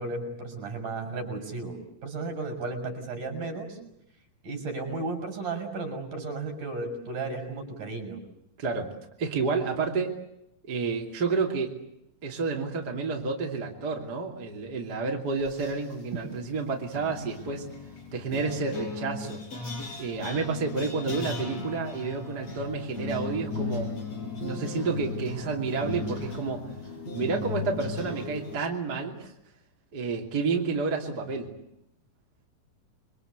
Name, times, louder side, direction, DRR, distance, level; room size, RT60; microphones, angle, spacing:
voice 1, 0.0-1.8 2.0-3.8 4.4-8.2 16.1-16.3, right 3 dB, 60° right, 5 dB, 7.4 m, -34 dB
voice 2, 8.6-8.9 9.2-10.2 10.6-11.7 12.2-17.7 18.1-19.4 20.0-23.9 24.2-26.6 27.1-29.3 29.9-31.5, right 4 dB, 30° right, 0 dB, 3.0 m, -30 dB
sound 1, 15.4-16.0 16.9-28.6, left 3 dB, 45° left, 6.8 m, -36 dB
29.0 x 23.0 x 8.1 m, 0.79 s
omnidirectional pair, 4.1 m